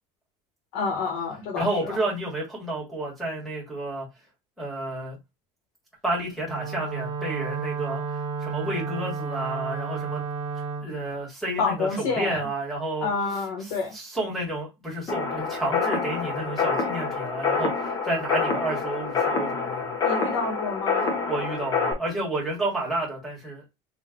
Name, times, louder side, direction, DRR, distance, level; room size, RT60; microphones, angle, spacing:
voice 1, 0.7-2.0 11.6-12.4 13.0-13.9 20.0-21.1, left 4 dB, 70° left, 1.3 m, -28 dB
voice 2, 1.5-4.1 4.6-5.2 6.0-10.2 10.8-13.1 13.6-19.9 21.3-23.6, right 1 dB, ahead, 1.5 m, -30 dB
Wind instrument woodwind instrument, 6.4-10.9, right 5 dB, 40° right, 0.5 m, -32 dB
sound 1, 15.1-21.9, left 4 dB, 20° left, 0.7 m, -27 dB
3.9 x 2.4 x 3.6 m
cardioid pair, 175°, 15 cm